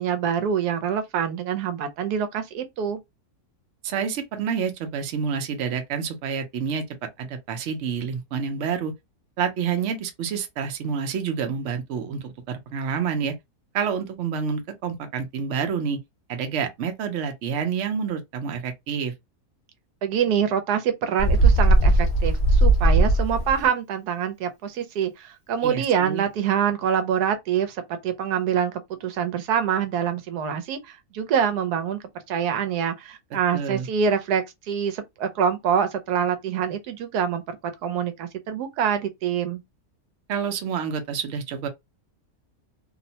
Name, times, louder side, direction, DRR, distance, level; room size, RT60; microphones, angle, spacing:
voice 1, 0.0-3.0 20.0-28.7 29.0-32.0 32.3-37.4 37.8-39.6, right 8 dB, 85° right, 1.1 m, -25 dB
voice 2, 3.8-6.8 7.2-8.9 9.4-13.3 13.7-16.0 16.3-19.1 25.6-26.2 33.5-33.9 40.3-41.7, right 6 dB, 60° right, 0.8 m, -28 dB
Bird, 21.2-23.6, right 2 dB, 40° left, 0.9 m, -18 dB
2.8 x 2.1 x 2.7 m
omnidirectional pair, 1.6 m